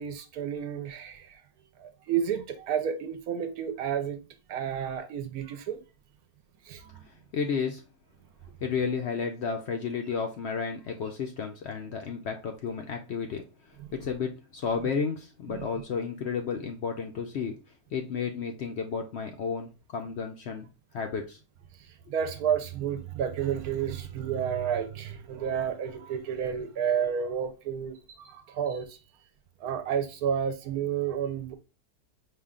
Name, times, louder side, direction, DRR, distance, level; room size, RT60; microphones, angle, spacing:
voice 1, 0.0-1.4 1.8-4.2 4.5-5.8 6.6-7.0 13.8-13.9 15.5-15.7 21.8-29.0 29.6-31.6, right 8 dB, 75° right, 1.1 m, -31 dB
voice 2, 7.3-7.8 8.6-13.4 13.9-17.6 17.9-20.7 20.9-21.4, left 6 dB, 65° left, 0.6 m, -32 dB
5.3 x 2.3 x 3.6 m
omnidirectional pair, 1.6 m